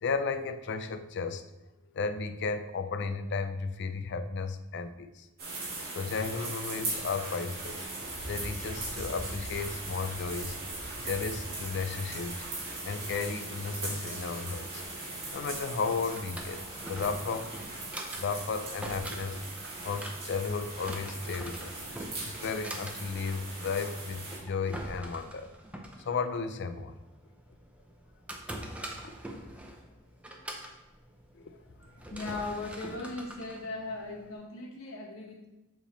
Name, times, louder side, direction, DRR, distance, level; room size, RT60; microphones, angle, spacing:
voice 1, 0.0-1.4 1.9-5.3 5.9-7.9 8.3-10.6 11.0-12.4 12.8-14.8 15.3-17.5 18.2-19.4 19.8-21.8 22.3-25.6 26.0-27.0 29.0-29.1 31.3-31.6, left 4 dB, 55° left, 9 dB, 0.4 m, -34 dB
sound 1, 5.4-24.4, right 2 dB, 50° right, 2.2 m, -39 dB
Drawer open or close, 15.9-34.4, right 1 dB, 5° right, 0.6 m, -44 dB
voice 2, 31.8-35.5, left 2 dB, 85° left, 0 dB, 1.3 m, -38 dB
7.2 x 3.6 x 4.2 m, 1.0 s
head